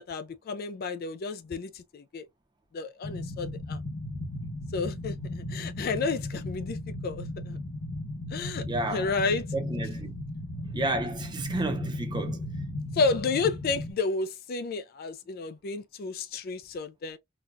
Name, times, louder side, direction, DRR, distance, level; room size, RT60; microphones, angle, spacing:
voice 1, 0.0-2.3 2.7-3.8 4.7-6.8 7.0-7.6 8.3-9.4 12.9-17.2, left 4 dB, 45° left, 0.3 m, -31 dB
sound 1, 3.0-13.9, left 1 dB, 90° left, 0.9 m, -36 dB
voice 2, 8.7-9.1 9.5-10.1 10.7-12.5, right 2 dB, 20° right, 0.6 m, -31 dB
4.0 x 2.2 x 2.5 m
head